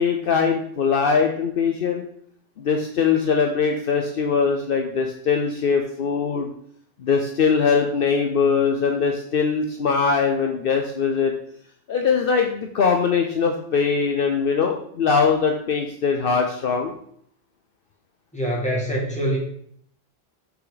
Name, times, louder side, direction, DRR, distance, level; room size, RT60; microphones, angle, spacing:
voice 1, 0.0-2.0 2.6-6.5 7.0-11.3 11.9-16.9, left 5 dB, 65° left, 3 dB, 0.9 m, -21 dB
voice 2, 18.3-19.4, equal, 5° left, -4 dB, 2.2 m, -24 dB
6.3 x 5.9 x 4.0 m, 0.65 s
omnidirectional pair, 1.1 m